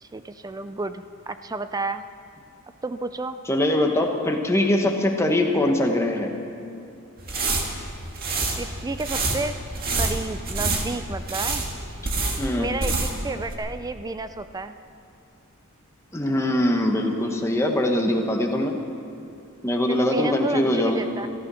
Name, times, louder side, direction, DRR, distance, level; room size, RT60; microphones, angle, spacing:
voice 1, 0.0-2.1 2.8-3.4 8.6-9.6 10.0-11.7 12.6-14.7 19.9-21.3, right 3 dB, 15° right, 10 dB, 0.4 m, -31 dB
voice 2, 3.5-6.3 12.4-12.7 16.1-18.8 19.6-21.0, left 1 dB, 15° left, 2 dB, 1.3 m, -22 dB
sound 1, 7.2-13.3 13.5-13.6, right 3 dB, 45° right, 1.9 m, -27 dB
15.0 x 13.5 x 6.3 m, 2.7 s
head